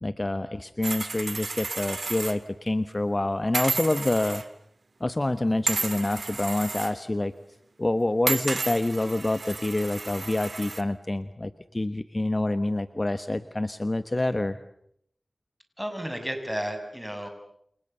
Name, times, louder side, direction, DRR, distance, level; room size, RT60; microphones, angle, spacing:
voice 1, 0.0-4.4 5.0-7.3 7.8-14.6, left 2 dB, 40° left, 11 dB, 1.2 m, -27 dB
sound 1, 0.8-2.4 2.7-2.8 3.5-4.5 5.7-6.9 8.3-10.8, right 3 dB, 75° right, 1.9 m, -32 dB
voice 2, 15.8-17.3, equal, 5° right, 6 dB, 6.9 m, -32 dB
29.5 x 28.0 x 6.9 m, 0.71 s
wide cardioid pair, 45°, 0 cm